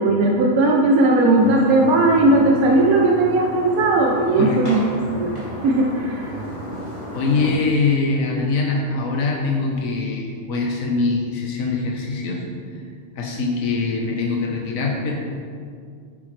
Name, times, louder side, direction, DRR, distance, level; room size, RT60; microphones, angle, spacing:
voice 1, 0.0-6.4, right 2 dB, 85° right, 0 dB, 1.3 m, -17 dB
sound 1, 1.3-7.5, equal, 30° left, 2.4 m, -33 dB
voice 2, 7.1-12.8 13.1-15.1, left 3 dB, 70° left, -1 dB, 1.5 m, -23 dB
10.0 x 9.9 x 3.3 m, 2.2 s
omnidirectional pair, 1.5 m